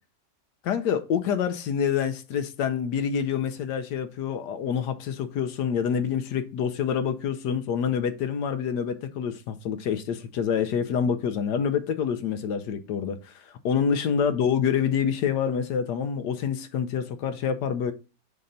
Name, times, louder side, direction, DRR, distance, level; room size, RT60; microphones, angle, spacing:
voice 1, 0.6-17.9, left 7 dB, 75° left, 1.1 m, -27 dB
6.5 x 2.9 x 5.3 m
omnidirectional pair, 2.0 m